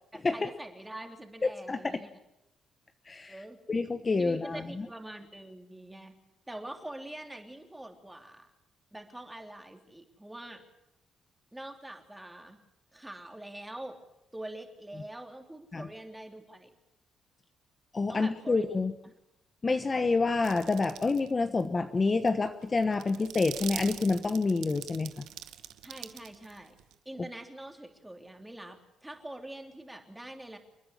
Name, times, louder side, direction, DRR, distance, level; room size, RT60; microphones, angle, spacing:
voice 1, 0.1-2.1 3.3-3.6 4.2-6.2 6.5-8.5 8.9-10.6 11.5-12.6 12.9-14.0 14.3-16.8 18.1-18.7 25.8-26.8 27.0-30.6, right 1 dB, 10° right, 4 dB, 3.2 m, -44 dB
voice 2, 1.4-2.0 3.1-3.3 3.7-4.6 15.7-15.8 17.9-18.9 19.6-25.2, left 3 dB, 30° left, 8 dB, 1.2 m, -28 dB
sound 1, 20.4-21.3 21.6-21.7 22.1-26.9, right 12 dB, 85° right, 1.0 m, -43 dB
29.0 x 10.0 x 10.0 m, 0.90 s
cardioid pair, 90°, 0 cm